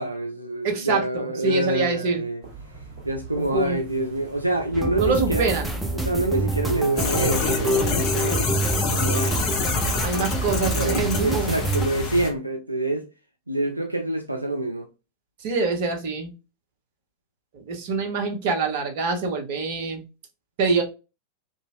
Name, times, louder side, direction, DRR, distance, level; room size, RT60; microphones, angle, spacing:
voice 1, 0.0-2.4 3.0-5.5 5.9-8.6 8.9-9.5 10.7-13.1 13.5-14.9, right 2 dB, 85° right, 0.3 m, -26 dB
voice 2, 0.6-2.2 3.4-3.8 5.0-5.8 10.0-11.5 15.4-16.3 17.5-20.0 20.6-20.8, right 4 dB, 50° right, 0.7 m, -25 dB
sound 1, 2.4-9.4, right 4 dB, 25° right, 1.5 m, -42 dB
sound 2, 4.7-11.9, right 2 dB, 5° right, 0.5 m, -27 dB
sound 3, 7.0-12.3, left 3 dB, 30° left, 0.8 m, -26 dB
2.9 x 2.7 x 2.3 m
figure-of-eight pair, 90°, 0 cm